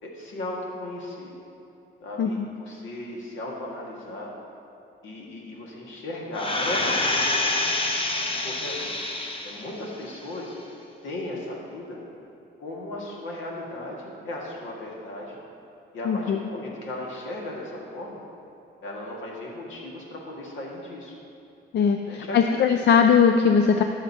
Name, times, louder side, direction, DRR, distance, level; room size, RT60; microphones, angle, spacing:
voice 1, 0.0-1.3 2.0-4.3 5.0-7.5 8.4-8.9 9.4-10.5 11.0-12.0 12.6-15.4 15.9-18.2 18.8-21.1 22.0-22.4, left 1 dB, 75° left, -2 dB, 1.9 m, -36 dB
sound 1, 6.3-9.7 10.2-10.3, left 2 dB, 25° left, 0.9 m, -26 dB
voice 2, 16.1-16.4 21.7-23.8, left 6 dB, 60° left, 6 dB, 0.5 m, -20 dB
15.0 x 6.5 x 2.9 m, 2.7 s
cardioid pair, 90°, 20 cm